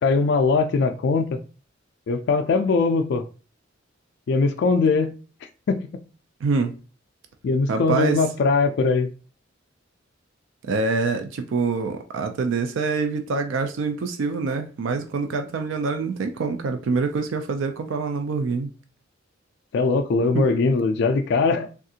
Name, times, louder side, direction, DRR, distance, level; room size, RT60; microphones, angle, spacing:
voice 1, 0.0-1.4 2.1-3.2 4.3-5.1 5.7-5.9 7.4-9.1 19.7-21.7, left 4 dB, 60° left, 0.3 m, -21 dB
voice 2, 6.4-6.7 7.7-8.2 10.6-18.7 20.3-20.4, right 4 dB, 70° right, 0.4 m, -25 dB
3.5 x 2.4 x 2.7 m
head